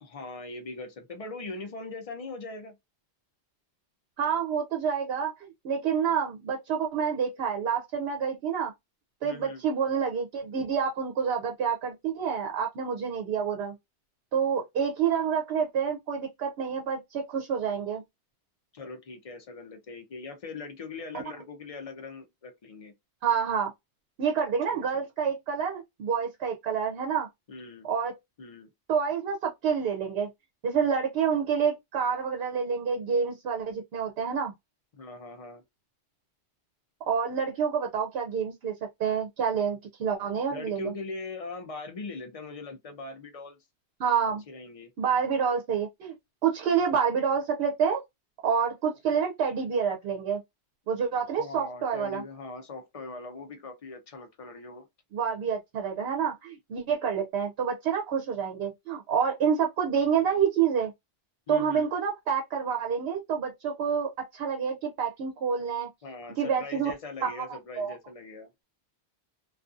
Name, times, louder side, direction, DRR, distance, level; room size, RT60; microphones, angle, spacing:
voice 1, 0.0-2.8 9.2-9.6 18.7-22.9 24.7-25.0 27.5-27.9 28.4-28.7 34.9-35.6 40.5-43.6 44.5-44.9 51.4-54.9 61.5-61.9 66.0-68.5, left 3 dB, 45° left, 0.4 m, -41 dB
voice 2, 4.2-8.7 9.2-13.7 14.3-18.0 23.2-23.7 24.2-27.3 27.8-28.1 28.9-30.3 30.6-34.5 37.1-38.7 39.0-40.9 44.0-44.4 45.0-46.1 46.4-48.0 48.4-50.4 50.9-52.2 55.1-60.9 61.5-65.9 66.4-66.9 67.2-67.5 67.8-68.0, right 7 dB, 70° right, 0.8 m, -28 dB
2.5 x 2.3 x 2.4 m
omnidirectional pair, 1.1 m